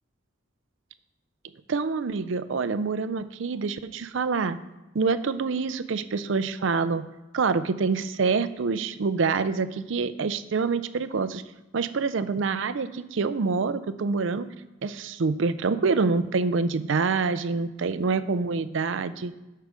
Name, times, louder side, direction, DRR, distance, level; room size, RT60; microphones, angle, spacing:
voice 1, 1.7-4.6 4.9-7.1 7.3-11.4 11.7-14.5 14.8-19.4, right 4 dB, 65° right, 13 dB, 0.5 m, -26 dB
8.1 x 5.6 x 5.1 m, 1.0 s
head